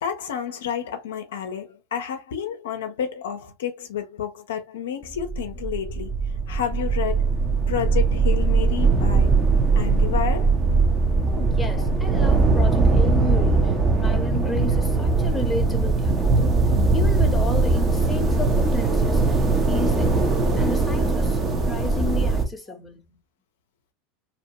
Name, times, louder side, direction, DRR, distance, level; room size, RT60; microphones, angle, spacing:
voice 1, 0.0-6.1 6.5-7.3 7.7-9.3 9.8-10.6 11.8-11.9, left 8 dB, 75° left, 0.5 m, -30 dB
sound 1, 5.0-22.4, right 3 dB, 30° right, 0.7 m, -20 dB
voice 2, 11.3-16.6 16.9-19.3 19.7-23.0, left 3 dB, 10° left, 0.8 m, -33 dB
2.8 x 2.1 x 2.9 m
hypercardioid pair, 85°, 0 cm